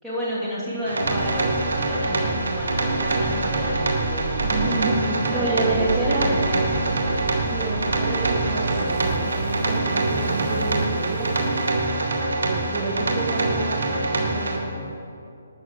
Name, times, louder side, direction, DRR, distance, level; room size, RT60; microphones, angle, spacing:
voice 1, 0.0-6.9, equal, 10° right, -8 dB, 2.8 m, -31 dB
sound 1, 0.9-14.6, right 2 dB, 90° right, 2.0 m, -25 dB
sound 2, 1.0-11.9, right 4 dB, 55° right, 0.6 m, -32 dB
voice 2, 2.2-2.6 4.4-6.3 7.4-11.3 12.4-14.7, right 3 dB, 25° right, -2 dB, 1.3 m, -29 dB
12.5 x 6.4 x 7.5 m, 2.5 s
hypercardioid pair, 165°, 0 cm